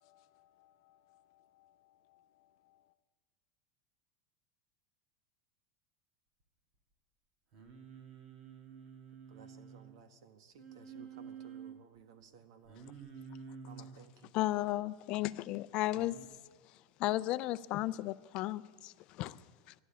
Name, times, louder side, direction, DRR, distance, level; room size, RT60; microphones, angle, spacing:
voice 1, 0.0-2.8, left 13 dB, 60° left, 0.8 m, -69 dB
Singing, 7.5-10.0 10.6-11.8 12.7-14.0 15.9-16.3, right 6 dB, 50° right, 1.8 m, -50 dB
voice 2, 9.3-12.8 13.6-14.6, right 6 dB, 75° right, 1.4 m, -58 dB
voice 3, 14.3-16.2 16.7-19.7, left 16 dB, 40° left, 0.3 m, -35 dB
12.0 x 11.0 x 8.3 m
supercardioid pair, 160°, 2 cm